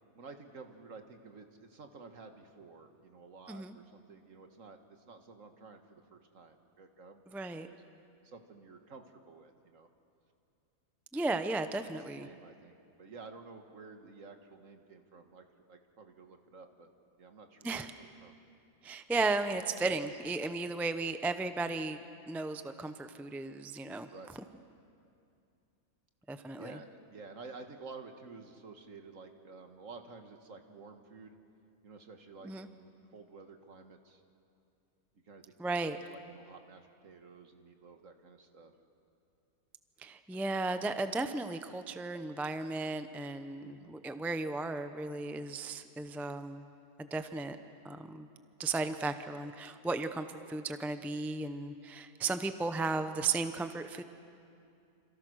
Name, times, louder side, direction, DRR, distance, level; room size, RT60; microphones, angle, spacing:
voice 1, 0.2-7.2 7.5-7.8 8.2-9.9 11.8-16.9 17.2-18.4 21.3-21.5 24.1-24.3 26.6-31.4 31.8-34.2 35.2-38.7 43.6-44.0, right 4 dB, 60° right, 6 dB, 1.9 m, -52 dB
voice 2, 7.3-7.7 11.1-12.3 17.6-17.9 18.8-22.0 22.3-24.1 26.3-26.8 32.4-32.7 35.6-36.0 40.0-46.6 47.0-47.6 47.8-48.3 48.6-54.0, right 3 dB, ahead, 9 dB, 0.5 m, -35 dB
28.0 x 27.0 x 6.4 m, 2.5 s
omnidirectional pair, 1.5 m